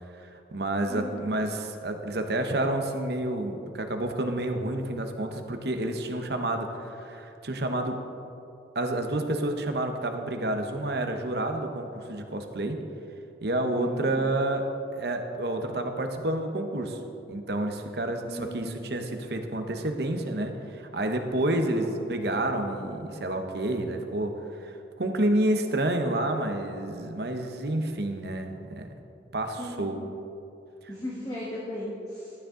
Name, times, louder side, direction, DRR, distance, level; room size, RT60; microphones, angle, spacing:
voice 1, 0.2-8.0 8.7-12.8 13.4-17.0 17.3-28.9 29.3-30.0, right 1 dB, 65° right, 5 dB, 0.9 m, -29 dB
voice 2, 0.9-1.3 13.8-14.2 18.2-19.2 21.6-22.0 29.6-30.0 30.9-32.3, left 1 dB, 20° left, -5 dB, 1.4 m, -37 dB
13.0 x 9.4 x 3.8 m, 2.8 s
head